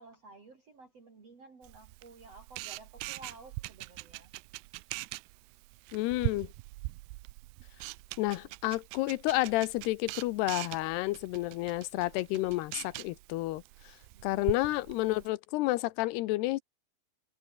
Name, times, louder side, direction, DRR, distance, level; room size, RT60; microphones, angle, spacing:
voice 1, 0.0-4.3 14.1-14.5, right 3 dB, 35° right, 4.9 m, -53 dB
Camera, 1.6-15.3, right 22 dB, 80° right, 2.5 m, -42 dB
voice 2, 5.9-6.5 8.2-13.6 14.2-16.6, left 18 dB, 80° left, 2.7 m, -30 dB
omnidirectional pair, 5.0 m